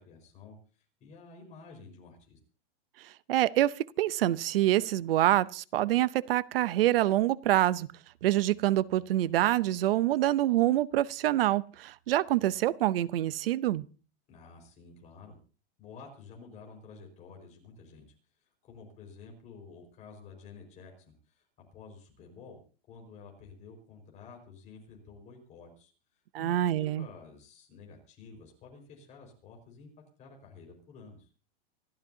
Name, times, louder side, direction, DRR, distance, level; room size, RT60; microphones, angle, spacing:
voice 1, 0.0-2.4 14.3-15.4 15.8-18.1 18.6-21.5 21.7-22.6 22.9-25.9 26.4-31.3, left 4 dB, 25° left, 5.1 m, -51 dB
voice 2, 3.3-7.9 8.2-13.8 26.3-27.1, right 14 dB, 65° right, 0.8 m, -26 dB
26.0 x 12.5 x 2.8 m
supercardioid pair, 165°, 30 cm